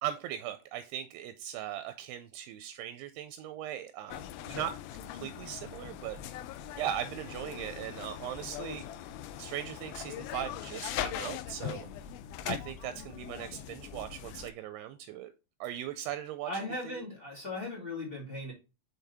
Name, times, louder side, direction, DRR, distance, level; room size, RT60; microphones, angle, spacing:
voice 1, 0.0-4.7 5.1-6.2 6.8-8.8 9.4-11.9 12.5-15.3 15.6-16.5 16.8-17.1, right 11 dB, 85° right, 9 dB, 2.5 m, -39 dB
sound 1, 4.1-14.5, left 11 dB, 85° left, 2.1 m, -41 dB
voice 2, 16.4-18.5, left 2 dB, 20° left, -2 dB, 1.7 m, -38 dB
5.8 x 5.6 x 3.4 m, 0.30 s
omnidirectional pair, 4.8 m